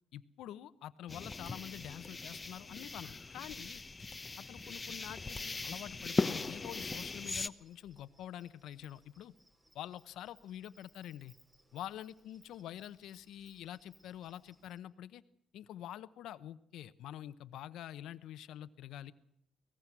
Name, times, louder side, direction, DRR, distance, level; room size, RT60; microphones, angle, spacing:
voice 1, 0.1-3.8 4.4-9.3 9.7-11.3 11.7-15.2 15.5-19.1, left 11 dB, 85° left, 15 dB, 0.9 m, -47 dB
sound 1, 1.1-7.5, left 3 dB, 25° left, 0.8 m, -39 dB
Insect, 7.4-14.8, right 1 dB, 25° right, 5.3 m, -67 dB
23.0 x 19.5 x 6.1 m, 0.72 s
cardioid pair, 90°, 0 cm